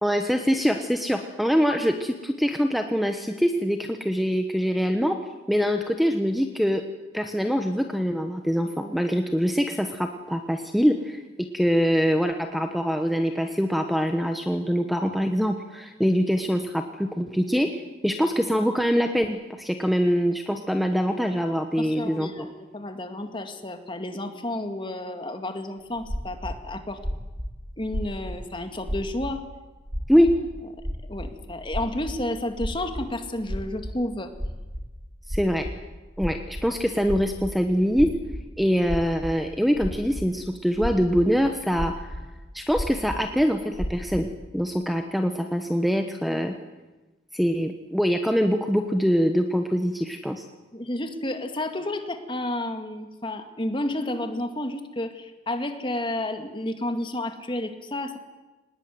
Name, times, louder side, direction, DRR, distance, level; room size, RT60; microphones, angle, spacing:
voice 1, 0.0-5.2 5.5-6.8 7.1-11.2 11.5-22.5 30.1-30.3 35.3-35.6 36.2-38.1 38.6-42.2 42.5-46.5 47.3-50.4, equal, ahead, 5 dB, 1.2 m, -24 dB
voice 2, 21.8-27.0 27.8-29.4 31.1-34.3 50.7-58.2, left 1 dB, 25° left, 7 dB, 2.2 m, -31 dB
sound 1, 26.0-29.4 29.7-31.3 31.6-32.2 32.5-33.1 33.4-34.1 34.3-34.9 35.2-35.8 36.1-37.5 37.9-38.4 38.8-39.3 39.7-40.3 40.7-42.3 42.7-43.2 43.7-44.4, equal, 30° right, 4.2 m, -32 dB
24.0 x 20.0 x 9.5 m, 1.2 s
head